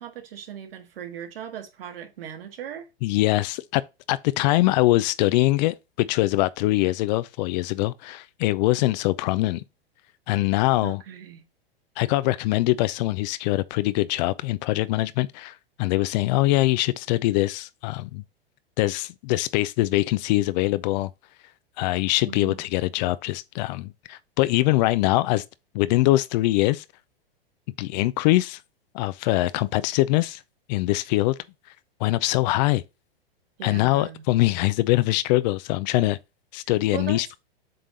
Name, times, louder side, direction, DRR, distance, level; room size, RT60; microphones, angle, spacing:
voice 1, 0.0-2.9 10.8-11.4 22.3-22.6 33.6-34.2 36.9-37.4, right 9 dB, 70° right, 1.8 m, -38 dB
voice 2, 3.0-3.8 4.1-9.6 10.3-11.0 12.0-18.2 18.8-21.1 21.8-25.4 25.7-26.8 27.8-28.6 28.9-30.4 30.7-31.4 32.0-32.8 33.6-36.2 36.5-37.4, left 18 dB, 45° left, 0.5 m, -23 dB
7.7 x 3.4 x 4.0 m
hypercardioid pair, 105°, 30 cm